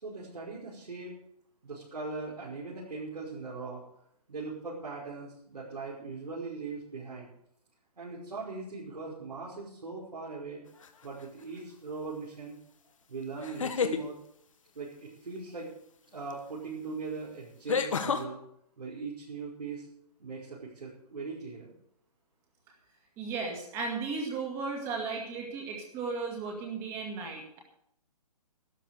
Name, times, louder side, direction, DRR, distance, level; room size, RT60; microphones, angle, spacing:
voice 1, 0.0-1.1 1.6-3.8 4.3-7.3 8.0-10.6 11.0-12.6 13.1-14.2 14.7-15.7 16.1-18.4 18.8-19.9 20.2-21.7, right 4 dB, 85° right, -7 dB, 5.7 m, -40 dB
sound 1, 10.8-11.2 13.4-14.0 16.3-16.4 17.7-18.2, left 6 dB, 55° left, 1.4 m, -29 dB
voice 2, 23.2-27.6, right 4 dB, 15° right, 1 dB, 2.1 m, -35 dB
13.0 x 11.0 x 6.7 m, 0.71 s
hypercardioid pair, 170°, 20 cm